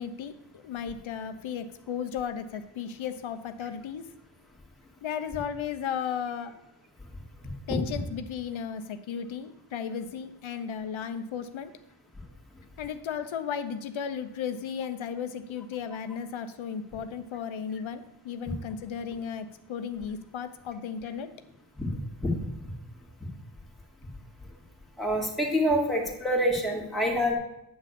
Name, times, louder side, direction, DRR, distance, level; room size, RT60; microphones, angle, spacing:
voice 1, 0.0-4.1 5.0-6.6 7.7-11.7 12.8-21.3, left 7 dB, 80° left, 9 dB, 0.7 m, -35 dB
voice 2, 25.0-27.3, equal, ahead, -3 dB, 2.0 m, -26 dB
9.5 x 4.1 x 7.2 m, 0.85 s
wide cardioid pair, 140°, 46 cm